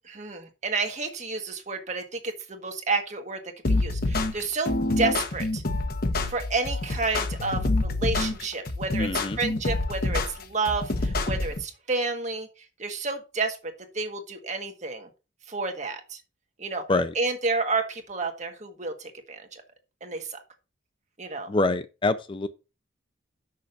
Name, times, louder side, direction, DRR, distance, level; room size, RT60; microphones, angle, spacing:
voice 1, 0.0-3.4 3.7-5.6 6.3-12.5 12.8-15.1 15.5-16.2 16.6-16.9 17.1-19.6 20.0-20.4 21.2-21.5, right 3 dB, 40° right, 1.6 m, -30 dB
sound 1, 3.6-11.6, left 2 dB, 50° left, 1.2 m, -27 dB
voice 2, 9.0-9.4 16.9-17.1 21.5-22.5, left 2 dB, 25° left, 0.5 m, -25 dB
6.4 x 5.6 x 6.7 m
head